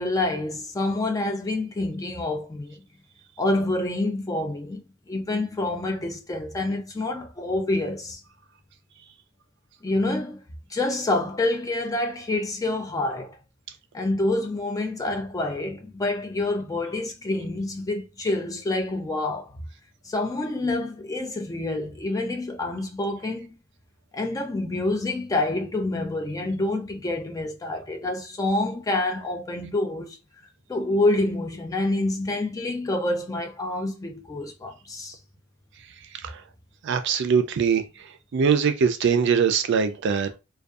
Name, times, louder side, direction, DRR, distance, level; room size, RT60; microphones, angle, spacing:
voice 1, 0.0-2.8 3.4-8.2 9.8-10.4 10.7-13.4 13.9-19.6 20.0-23.6 24.1-30.2 30.7-35.2, left 2 dB, 15° left, 0.4 m, -27 dB
voice 2, 36.8-37.8 38.3-40.4, right 6 dB, 60° right, 0.4 m, -22 dB
2.6 x 2.2 x 2.3 m
head